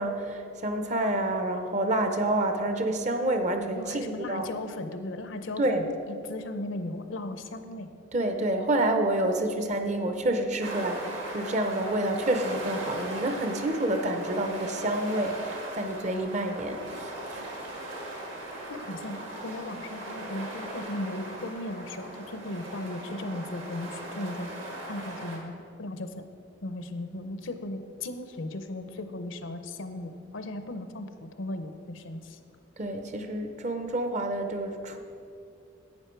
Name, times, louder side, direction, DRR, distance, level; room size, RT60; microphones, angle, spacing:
voice 1, 0.0-4.5 5.6-5.8 8.1-17.5 32.8-35.0, right 1 dB, 35° right, 6 dB, 0.7 m, -28 dB
voice 2, 3.8-7.9 18.7-24.5 24.9-26.2 26.6-32.4, left 1 dB, 70° left, 9 dB, 0.7 m, -37 dB
sound 1, 10.6-25.4, right 1 dB, 70° right, 2.0 m, -38 dB
11.5 x 8.4 x 4.6 m, 2.6 s
head